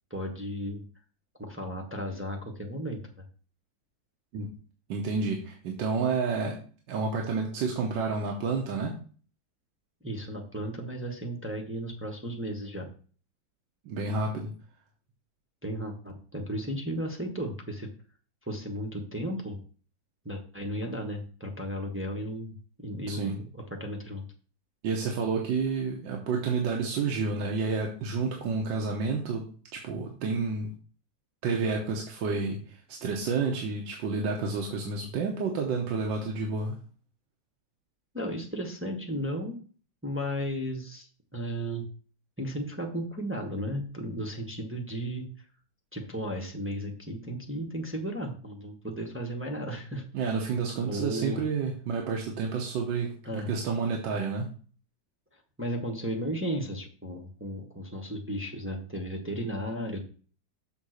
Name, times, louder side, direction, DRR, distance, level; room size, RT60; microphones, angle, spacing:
voice 1, 0.1-0.8 1.4-3.0 10.0-12.9 15.6-17.9 18.5-19.6 20.2-22.5 22.8-24.3 38.1-39.6 40.0-41.9 42.4-45.3 45.9-50.0 50.9-51.4 53.2-53.5 55.6-60.0, equal, 10° right, 1 dB, 0.8 m, -34 dB
voice 2, 4.9-6.6 6.9-9.0 13.8-14.5 23.1-23.4 24.8-30.7 31.4-36.8 50.1-54.5, right 4 dB, 85° right, 1 dB, 1.7 m, -30 dB
7.0 x 3.6 x 6.4 m, 0.41 s
omnidirectional pair, 1.9 m